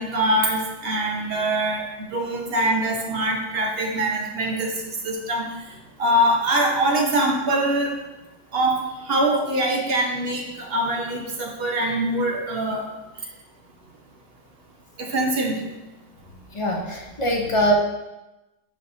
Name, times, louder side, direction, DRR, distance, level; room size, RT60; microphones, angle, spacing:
voice 1, 0.0-4.7 5.0-5.5 6.0-8.0 8.5-12.9 15.0-15.6, right 1 dB, 45° right, 0 dB, 0.9 m, -23 dB
voice 2, 16.5-17.7, equal, 55° left, -2 dB, 0.3 m, -22 dB
8.7 x 4.5 x 2.7 m, 1.0 s
omnidirectional pair, 1.8 m